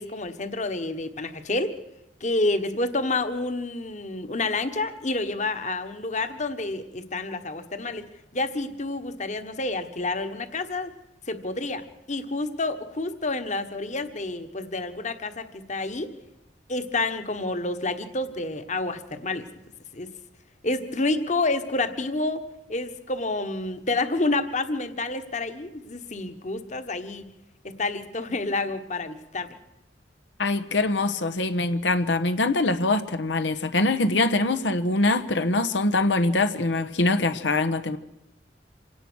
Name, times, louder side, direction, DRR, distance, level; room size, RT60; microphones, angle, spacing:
voice 1, 0.0-1.8 2.2-8.1 8.3-10.9 11.3-16.1 16.7-19.5 19.9-20.1 20.6-22.4 22.7-27.3 27.6-29.6, left 2 dB, 40° left, 10 dB, 1.4 m, -29 dB
voice 2, 30.4-38.0, left 2 dB, 90° left, 11 dB, 1.2 m, -23 dB
26.5 x 18.0 x 6.3 m, 0.87 s
head